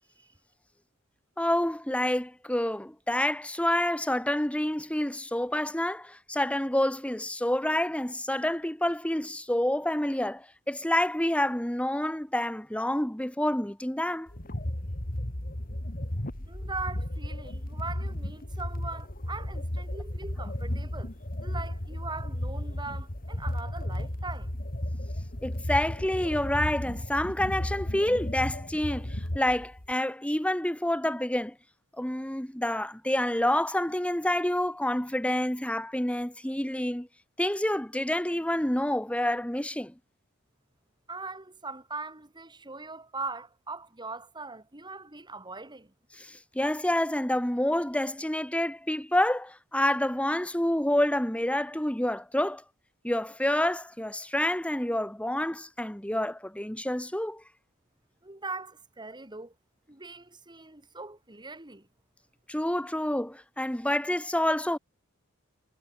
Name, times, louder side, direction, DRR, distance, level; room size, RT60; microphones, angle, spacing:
voice 1, 1.4-14.3 25.4-31.5 32.0-37.1 37.4-39.9 46.1-52.6 53.0-57.4 62.5-64.8, left 1 dB, 5° left, 1.5 m, -28 dB
sound 1, 14.3-29.9, left 1 dB, 40° left, 2.6 m, -34 dB
voice 2, 16.5-21.1 21.4-24.6 41.1-45.9 58.2-59.5 59.9-61.9, right 3 dB, 20° right, 3.8 m, -40 dB
head